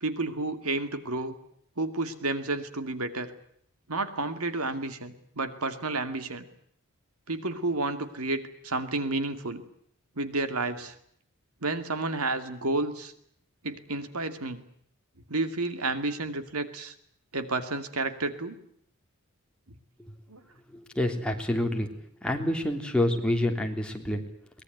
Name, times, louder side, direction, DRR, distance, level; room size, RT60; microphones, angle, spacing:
voice 1, 0.0-1.3 1.8-3.3 3.9-6.5 7.3-9.6 10.2-11.0 11.6-13.1 13.6-14.6 15.3-16.9 17.3-18.5 20.3-20.4, right 2 dB, 85° right, 10 dB, 2.4 m, -31 dB
voice 2, 20.9-21.9 22.2-24.2, left 1 dB, 5° left, 2 dB, 3.2 m, -27 dB
23.0 x 20.5 x 9.4 m, 0.67 s
head